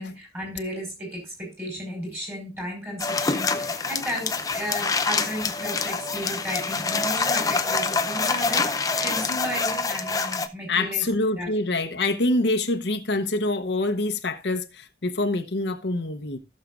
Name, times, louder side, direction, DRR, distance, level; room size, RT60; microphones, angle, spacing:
voice 1, 0.0-11.0 11.4-11.5, equal, 15° right, 4.7 m, -34 dB
sound 1, 3.0-10.5, left 4 dB, 20° left, 0.6 m, -26 dB
voice 2, 10.7-16.4, left 2 dB, 80° left, 1.0 m, -25 dB
17.0 x 6.6 x 2.4 m
head